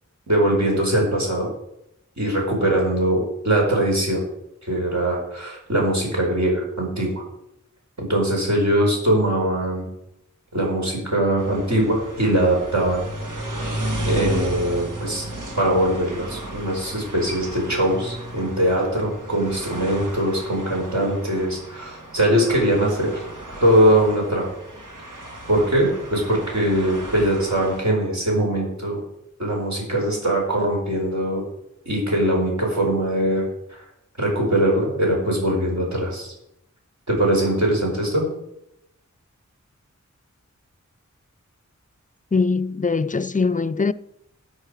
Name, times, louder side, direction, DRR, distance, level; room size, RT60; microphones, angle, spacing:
voice 1, 0.3-1.5 2.2-4.2 4.6-7.2 8.0-9.9 10.5-13.0 14.0-15.2 15.5-23.2 23.6-24.5 25.5-29.0 29.4-31.4 31.8-33.8 34.2-36.3 37.1-38.3, right 1 dB, 65° right, 4.8 m, -21 dB
sound 1, 11.4-27.8, right 1 dB, 85° right, 2.2 m, -34 dB
voice 2, 42.3-43.9, left 4 dB, 25° left, 0.5 m, -22 dB
13.0 x 8.3 x 5.0 m
wide cardioid pair, 50°, 30 cm